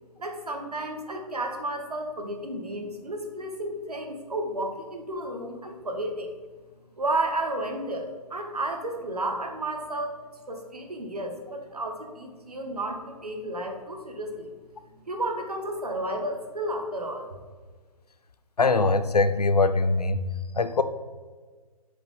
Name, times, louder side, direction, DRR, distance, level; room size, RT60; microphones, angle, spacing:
voice 1, 0.2-6.3 7.0-10.1 10.5-14.5 15.1-17.3, right 1 dB, 75° right, 3 dB, 1.3 m, -32 dB
voice 2, 18.6-20.3 20.5-20.8, left 3 dB, 80° left, 12 dB, 0.6 m, -22 dB
7.4 x 5.0 x 3.2 m, 1.4 s
figure-of-eight pair, 130°, 20 cm